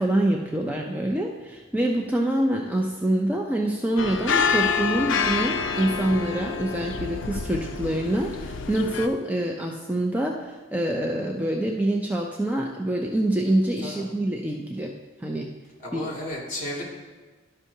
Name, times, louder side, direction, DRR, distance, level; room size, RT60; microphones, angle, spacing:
voice 1, 0.0-14.9 15.2-15.5 15.9-16.1, right 1 dB, 10° right, 0 dB, 0.4 m, -26 dB
sound 1, 4.0-9.1, left 5 dB, 70° left, 0.4 m, -27 dB
voice 2, 15.8-16.8, left 1 dB, 40° left, -3 dB, 2.1 m, -33 dB
12.0 x 5.4 x 2.7 m, 1.3 s
head